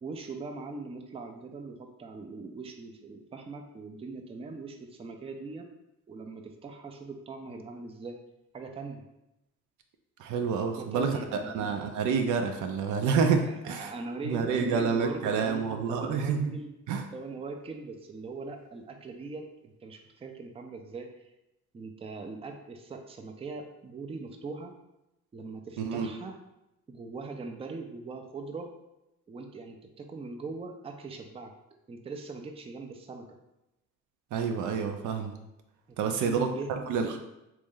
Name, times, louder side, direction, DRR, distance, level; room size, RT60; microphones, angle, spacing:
voice 1, 0.0-5.7 6.1-8.2 8.5-9.0 10.7-11.5 13.4-15.6 15.9-16.7 17.1-21.3 21.7-24.7 25.3-26.4 26.9-28.7 29.3-31.5 31.9-33.4 35.9-36.9, right 3 dB, 20° right, 4 dB, 0.4 m, -41 dB
voice 2, 10.2-13.9 14.2-16.5 16.9-17.1 25.8-26.1 34.3-35.4 36.0-37.2, right 5 dB, 75° right, 5 dB, 0.5 m, -28 dB
3.1 x 2.6 x 3.7 m, 0.90 s
cardioid pair, 90°, 30 cm